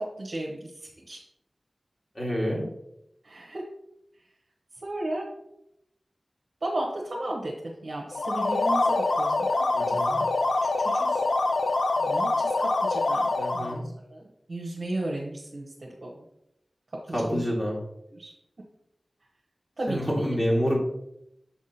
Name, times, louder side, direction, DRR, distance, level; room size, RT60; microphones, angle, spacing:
voice 1, 0.2-1.2 3.2-3.7 4.8-5.3 6.6-10.3 10.8-11.2 12.0-13.8 14.1-16.2 17.0-17.5 18.1-18.3 19.8-20.3, right 1 dB, 65° right, -3 dB, 1.1 m, -35 dB
voice 2, 2.1-2.6 9.7-10.2 13.3-13.8 17.1-17.8 19.9-20.8, equal, 30° left, -3 dB, 2.4 m, -27 dB
sound 1, 8.1-13.8, left 2 dB, 85° left, 0.5 m, -25 dB
7.2 x 3.6 x 4.2 m, 0.80 s
wide cardioid pair, 50°, 0 cm